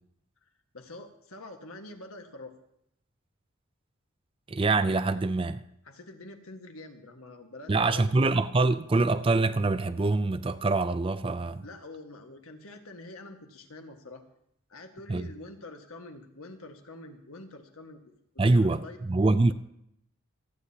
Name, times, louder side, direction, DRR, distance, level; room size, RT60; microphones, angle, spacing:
voice 1, 0.7-2.5 5.8-8.1 11.6-14.2 14.7-19.0, left 2 dB, 80° left, 1.6 m, -46 dB
voice 2, 4.5-5.6 7.7-11.6 15.1-15.3 18.4-19.5, right 3 dB, 25° right, 0.4 m, -25 dB
27.0 x 9.8 x 2.9 m
head